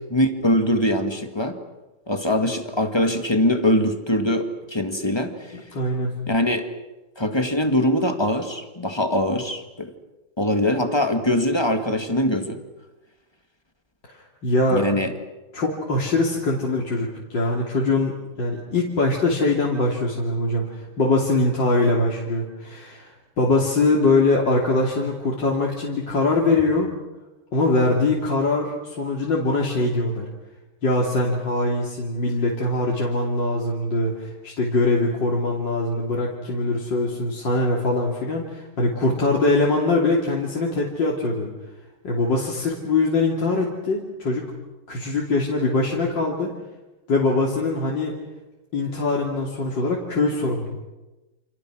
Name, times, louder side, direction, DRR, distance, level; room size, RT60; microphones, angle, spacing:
voice 1, 0.1-1.6 2.1-5.6 6.3-6.7 7.2-9.9 10.4-12.6 14.7-15.1, left 1 dB, 10° left, 6 dB, 1.9 m, -22 dB
voice 2, 5.5-6.2 14.4-14.9 15.5-26.9 27.5-30.2 30.8-41.5 42.0-44.5 44.9-46.5 47.1-48.1 48.7-50.8, left 2 dB, 55° left, -3 dB, 3.7 m, -22 dB
29.5 x 28.0 x 6.3 m, 1.1 s
omnidirectional pair, 2.4 m